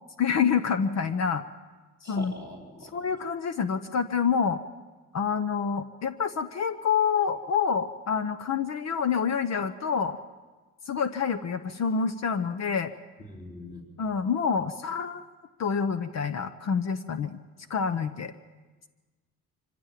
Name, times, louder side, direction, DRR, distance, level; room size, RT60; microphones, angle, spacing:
voice 1, 0.2-1.4 2.1-2.3 2.8-4.6 5.1-10.2 10.9-12.9 14.0-15.2 15.6-17.4 17.7-18.3, left 6 dB, 55° left, 10 dB, 0.9 m, -27 dB
voice 2, 2.0-2.9 13.3-13.8, left 1 dB, 30° left, -3 dB, 3.6 m, -42 dB
24.5 x 16.0 x 7.5 m, 1.3 s
cardioid pair, 105°, 33 cm